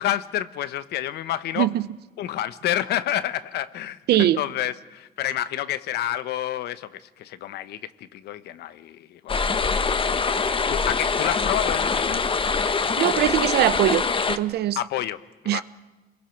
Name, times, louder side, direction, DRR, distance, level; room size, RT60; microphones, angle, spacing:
voice 1, 0.0-1.7 2.2-10.2 10.7-12.2 14.7-15.2 15.4-15.6, left 12 dB, 85° left, 1.0 m, -29 dB
voice 2, 1.6-1.9 4.1-4.4 13.0-14.8 15.5-15.6, right 13 dB, 75° right, 0.8 m, -21 dB
sound 1, 9.3-14.4, left 5 dB, 30° left, 1.1 m, -24 dB
29.0 x 22.0 x 5.9 m
cardioid pair, 95°, 17 cm